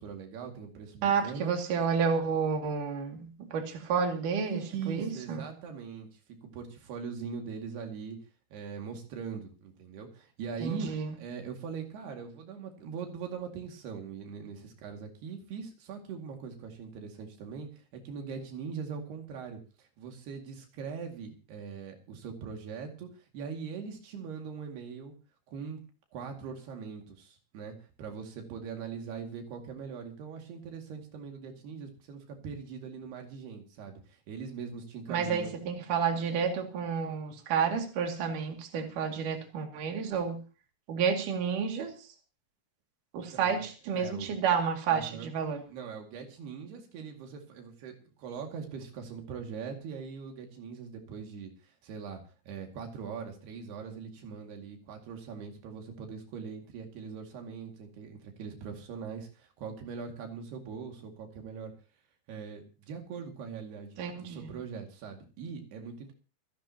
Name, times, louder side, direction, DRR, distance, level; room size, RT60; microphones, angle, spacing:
voice 1, 0.0-1.5 4.4-6.1 6.5-8.2 8.5-10.9 11.2-17.7 18.1-19.6 20.0-23.1 23.3-25.1 25.5-25.8 26.1-34.0 34.3-35.5 43.3-43.6 43.9-44.3 44.9-45.3 45.7-51.5 51.8-52.2 52.5-61.7 62.3-63.9 64.2-66.1, right 6 dB, 85° right, 3 dB, 4.2 m, -41 dB
voice 2, 1.0-5.4 10.6-11.1 35.1-40.4 40.9-42.1 43.1-45.6 64.0-64.5, right 6 dB, 60° right, 3 dB, 3.7 m, -30 dB
27.5 x 10.5 x 2.9 m, 0.34 s
omnidirectional pair, 4.5 m